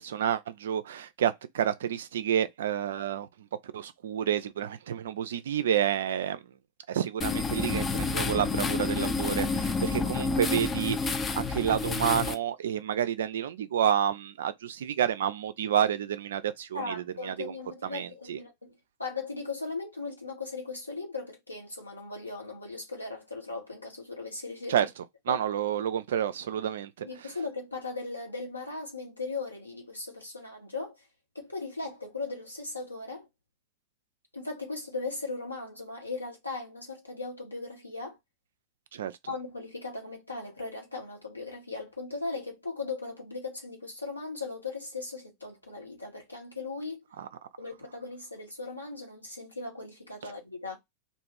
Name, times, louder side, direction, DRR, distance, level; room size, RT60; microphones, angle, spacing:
voice 1, 0.0-3.5 3.7-6.4 6.9-17.5 17.8-18.4 24.7-24.9 25.3-27.3 38.9-39.1 47.2-47.3, right 9 dB, 60° right, 0.4 m, -29 dB
sound 1, 7.2-12.3, left 4 dB, 20° left, 0.4 m, -29 dB
voice 2, 16.7-24.9 25.3-25.4 27.0-31.1 31.3-33.3 34.3-38.2 39.3-47.0 47.6-50.8, left 3 dB, 85° left, 1.2 m, -38 dB
2.5 x 2.4 x 3.2 m
figure-of-eight pair, 90°, 0 cm